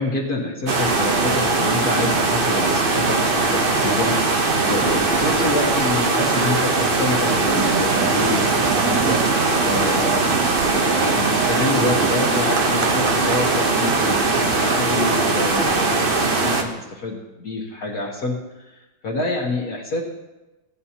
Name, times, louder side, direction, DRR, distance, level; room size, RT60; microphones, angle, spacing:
voice 1, 0.0-4.1 4.4-18.3 18.6-20.0, left 2 dB, 55° left, -3 dB, 1.6 m, -27 dB
sound 1, 0.7-16.6, right 3 dB, 40° right, 0.8 m, -20 dB
sound 2, 7.5-15.5, right 9 dB, 80° right, 0.7 m, -29 dB
17.0 x 9.6 x 2.9 m, 1.1 s
omnidirectional pair, 2.1 m